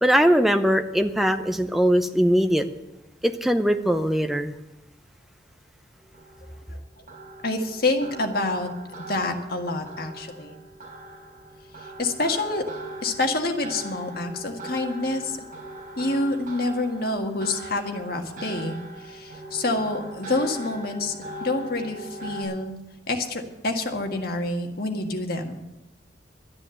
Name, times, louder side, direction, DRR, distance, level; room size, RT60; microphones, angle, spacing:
voice 1, 0.0-2.6 3.2-4.5, equal, ahead, 6 dB, 0.7 m, -21 dB
sound 1, 6.0-22.4, right 1 dB, 45° right, 4.5 m, -40 dB
voice 2, 7.4-8.7 9.1-10.5 12.0-12.6 13.0-15.4 16.0-22.7 23.1-25.6, left 2 dB, 55° left, 3 dB, 1.7 m, -27 dB
12.5 x 9.8 x 7.8 m, 0.93 s
head